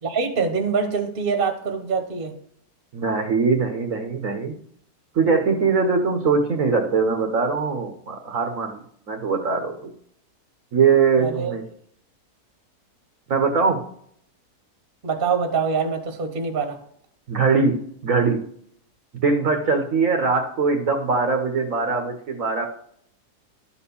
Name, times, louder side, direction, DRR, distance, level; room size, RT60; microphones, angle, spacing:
voice 1, 0.0-2.3 11.2-11.5 15.0-16.8, right 5 dB, 35° right, 5 dB, 1.3 m, -24 dB
voice 2, 2.9-4.6 5.1-8.8 9.1-9.8 10.7-11.6 13.3-13.8 17.3-18.4 19.2-22.7, right 4 dB, 60° right, 4 dB, 1.3 m, -21 dB
12.0 x 4.3 x 6.9 m, 0.65 s
omnidirectional pair, 1.7 m